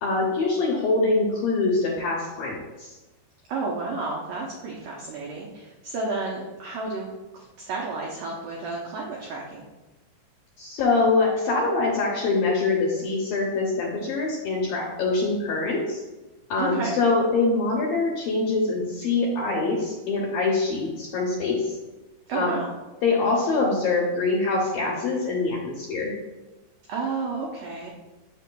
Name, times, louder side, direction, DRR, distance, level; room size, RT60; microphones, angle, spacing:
voice 1, 0.0-2.9 10.6-16.0 16.5-21.8 22.3-22.5 23.0-26.1, left 3 dB, 75° left, -3 dB, 2.2 m, -24 dB
voice 2, 3.5-9.7 16.6-17.0 22.3-22.7 26.9-27.9, right 3 dB, 85° right, -3 dB, 1.9 m, -31 dB
7.5 x 6.2 x 2.3 m, 1.1 s
omnidirectional pair, 5.1 m